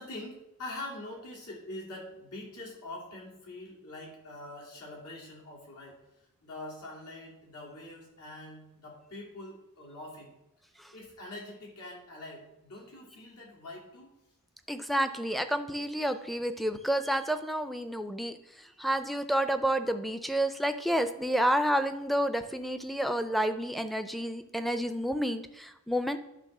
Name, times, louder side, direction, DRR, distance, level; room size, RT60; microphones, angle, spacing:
voice 1, 0.0-6.0 6.4-10.3 10.9-14.1, left 2 dB, 90° left, -3 dB, 2.7 m, -44 dB
voice 2, 14.7-26.2, right 1 dB, ahead, 8 dB, 0.4 m, -30 dB
10.5 x 3.7 x 6.0 m, 0.87 s
head